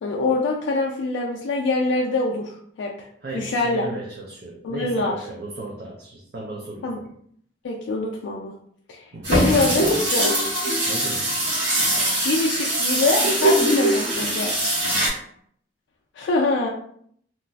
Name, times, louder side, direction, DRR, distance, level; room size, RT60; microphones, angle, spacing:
voice 1, 0.0-3.1 3.3-3.8 4.6-5.1 6.8-7.0 7.6-8.5 8.9-10.4 12.2-14.6 16.2-16.7, left 3 dB, 75° left, -1 dB, 0.3 m, -24 dB
voice 2, 3.2-7.1 9.1-9.4 10.9-11.4, right 2 dB, 55° right, -2 dB, 0.4 m, -35 dB
sound 1, 9.2-15.1, right 1 dB, 90° right, 1.4 m, -23 dB
sound 2, 9.8-11.7 13.2-14.7, right 1 dB, 40° right, 0.9 m, -25 dB
2.9 x 2.4 x 2.3 m, 0.65 s
head